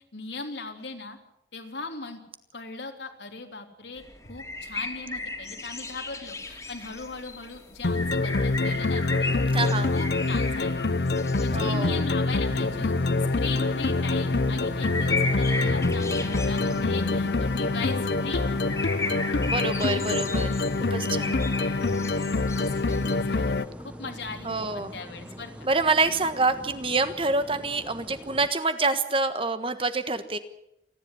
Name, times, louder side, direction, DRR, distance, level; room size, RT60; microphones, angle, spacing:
voice 1, 0.1-1.2 1.5-2.2 2.5-9.3 9.8-10.8 11.4-12.9 13.4-18.4 22.6-25.7, left 4 dB, 85° left, 4 dB, 3.3 m, -39 dB
sound 1, 4.0-23.1, left 3 dB, 15° left, 2.7 m, -36 dB
sound 2, 7.8-23.7, left 3 dB, 70° left, 0.8 m, -25 dB
voice 2, 9.5-9.9 11.5-12.0 19.4-21.4 24.4-25.0 25.6-30.4, right 3 dB, 30° right, 10 dB, 1.4 m, -27 dB
sound 3, 12.4-28.5, equal, 5° right, 1.1 m, -41 dB
28.5 x 11.0 x 9.7 m, 0.83 s
head